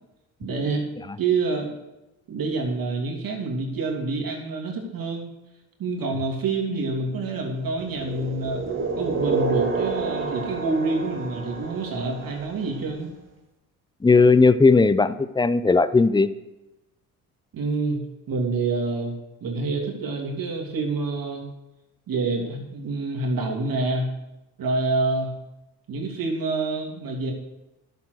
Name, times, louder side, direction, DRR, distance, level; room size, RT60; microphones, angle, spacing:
voice 1, 0.4-0.9 1.2-1.7 2.3-5.3 5.8-8.6 9.0-13.1 17.5-19.1 19.4-21.5 22.1-24.1 24.6-25.4 25.9-27.3, right 3 dB, 55° right, 1 dB, 2.9 m, -27 dB
sound 1, 7.8-12.7, right 4 dB, 30° right, 2.2 m, -29 dB
voice 2, 14.0-16.3, left 4 dB, 10° left, 14 dB, 0.7 m, -17 dB
11.5 x 6.9 x 6.4 m, 0.97 s
hypercardioid pair, 60°, 42 cm